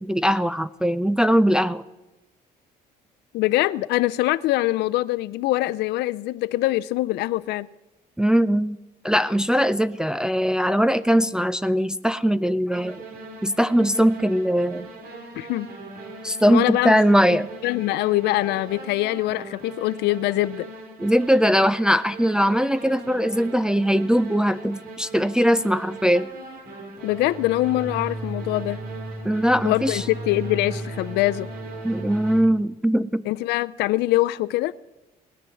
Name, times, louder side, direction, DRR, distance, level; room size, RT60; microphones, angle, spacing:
voice 1, 0.0-1.8 8.2-8.8 9.0-13.0 13.4-14.9 16.2-17.5 21.0-26.3 29.2-30.0 31.8-33.2, equal, 5° right, 11 dB, 0.4 m, -20 dB
voice 2, 3.3-7.7 15.4-15.7 16.5-17.0 17.6-20.7 27.0-28.8 29.6-31.5 33.3-34.7, left 17 dB, 80° left, 15 dB, 0.5 m, -23 dB
sound 1, 12.7-32.4, right 2 dB, 65° right, 3.6 m, -38 dB
18.0 x 10.0 x 7.0 m, 1.0 s
cardioid pair, 110°, 17 cm